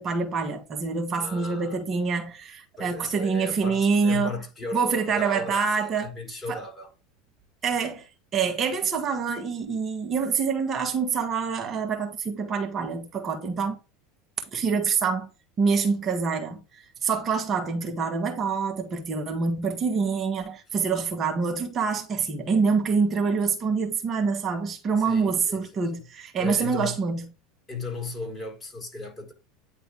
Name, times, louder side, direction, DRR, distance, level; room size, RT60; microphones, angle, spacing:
voice 1, 0.0-4.4 4.7-6.1 6.5-6.6 7.6-8.1 8.3-13.8 14.5-15.3 15.6-27.3, right 5 dB, 35° right, 1.6 m, -26 dB
voice 2, 1.2-1.8 2.8-6.9 20.7-20.8 25.0-26.0 26.4-27.0 27.7-29.3, left 2 dB, 20° left, 4.3 m, -36 dB
9.5 x 3.5 x 3.4 m
hypercardioid pair, 80°, 0 cm